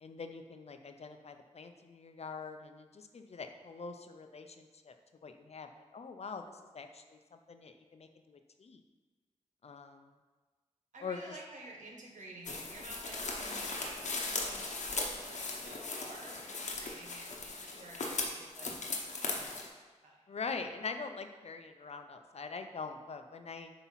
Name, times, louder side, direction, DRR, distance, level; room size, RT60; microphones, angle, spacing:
voice 1, 0.0-4.9 5.2-8.8 9.6-10.1 11.0-11.4 20.3-23.7, left 4 dB, 60° left, 7 dB, 0.6 m, -44 dB
voice 2, 10.9-19.5 20.0-20.2, right 2 dB, 90° right, -1 dB, 1.3 m, -51 dB
sound 1, 12.4-19.7, left 3 dB, 80° left, 1.0 m, -38 dB
8.1 x 2.9 x 5.7 m, 1.3 s
cardioid pair, 65°, 12 cm